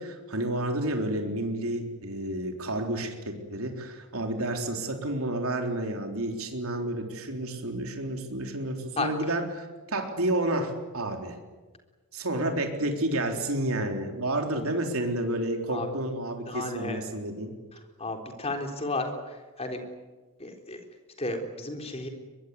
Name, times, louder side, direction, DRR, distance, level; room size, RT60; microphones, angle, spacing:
voice 1, 0.0-11.4 12.1-17.5, right 1 dB, 70° right, 4 dB, 3.8 m, -30 dB
voice 2, 16.5-17.0 18.0-19.1 19.6-19.8 20.4-20.8 21.2-22.1, left 2 dB, 30° left, 4 dB, 3.8 m, -32 dB
23.0 x 22.5 x 9.6 m, 1.3 s
head